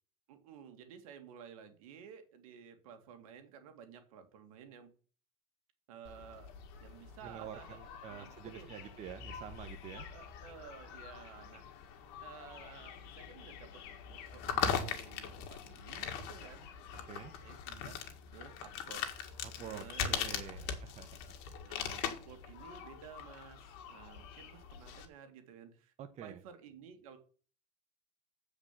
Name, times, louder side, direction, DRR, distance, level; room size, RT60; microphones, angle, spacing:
voice 1, 0.3-4.9 5.9-6.5 6.8-8.7 10.1-11.7 12.2-16.7 17.1-20.8 21.6-25.9 26.2-27.2, right 7 dB, 90° right, 7 dB, 2.1 m, -54 dB
sound 1, 6.0-25.0, left 8 dB, 70° left, 2.0 m, -42 dB
voice 2, 7.2-10.1 17.1-17.3 19.4-21.2 26.0-26.4, right 9 dB, 40° right, 8 dB, 1.1 m, -47 dB
8.6 x 5.0 x 7.2 m, 0.40 s
supercardioid pair, 120°, 17 cm